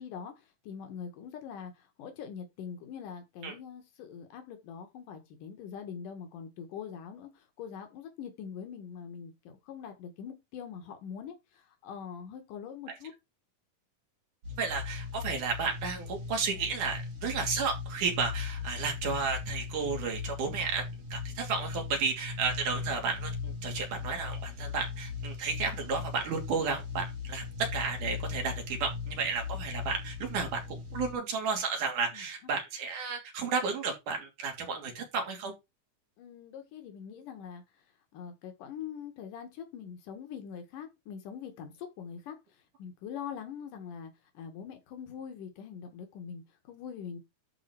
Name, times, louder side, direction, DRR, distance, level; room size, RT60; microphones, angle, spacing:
voice 1, 0.0-13.1 32.1-32.2 36.2-37.8 38.1-47.2, left 7 dB, 90° left, 3.2 m, -43 dB
sound 1, 14.4-31.1, left 5 dB, 50° right, 3.9 m, -39 dB
voice 2, 14.6-20.8 21.1-35.5, right 5 dB, 75° right, 4.2 m, -32 dB
11.5 x 4.3 x 4.6 m
omnidirectional pair, 3.7 m